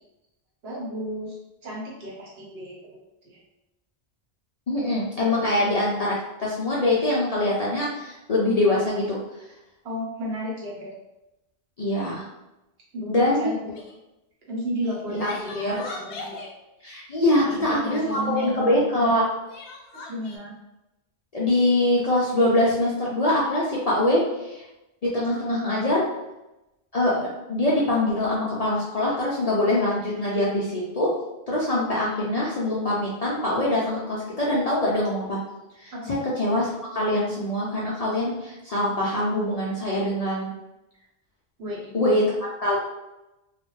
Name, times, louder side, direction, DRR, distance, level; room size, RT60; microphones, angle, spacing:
voice 1, 0.6-3.4 9.8-10.9 12.9-13.8 14.5-16.4 17.4-18.8 19.9-20.5 35.9-36.1 41.6-42.1, equal, 70° right, -4 dB, 1.0 m, -33 dB
voice 2, 4.7-9.2 11.8-12.2 13.1-13.6 15.1-15.8 16.8-19.3 21.3-24.7 25.0-26.0 26.9-31.1 31.5-35.4 35.8-35.9 36.4-40.5 41.9-42.8, left 1 dB, 55° left, -6 dB, 0.4 m, -23 dB
Crying sobbing, 13.7-14.0 14.8-16.5 17.6-18.6 19.5-20.4, left 3 dB, 90° left, 0.9 m, -41 dB
2.4 x 2.1 x 3.0 m, 0.96 s
omnidirectional pair, 1.1 m